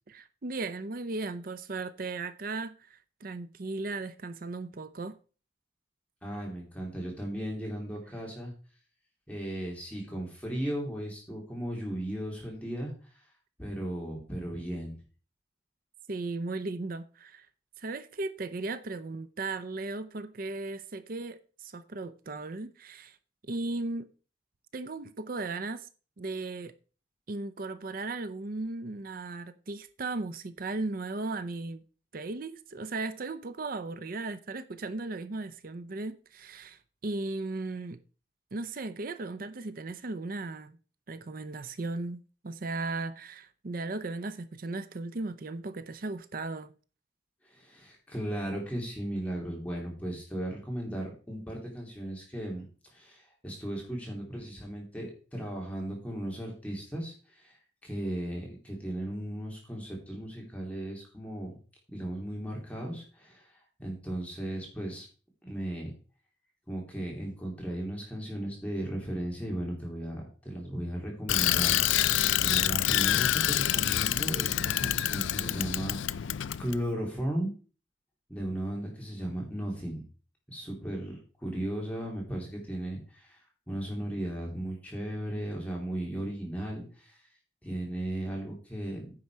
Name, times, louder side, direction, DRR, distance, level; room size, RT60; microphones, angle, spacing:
voice 1, 0.1-5.2 16.1-17.5 17.8-23.2 23.4-24.1 24.7-25.9 26.2-26.7 27.3-31.8 32.1-38.0 38.5-40.8 41.1-46.7, right 3 dB, 50° right, 0.6 m, -36 dB
voice 2, 6.2-8.5 9.3-13.2 13.6-14.9 47.4-52.6 52.9-61.5 61.9-65.1 65.4-65.9 66.7-76.3 76.6-77.5 78.3-80.0 80.5-87.2 87.6-89.1, right 1 dB, 5° left, 2.7 m, -36 dB
Bicycle, 71.3-76.8, left 12 dB, 80° left, 0.4 m, -27 dB
9.7 x 6.3 x 4.6 m
head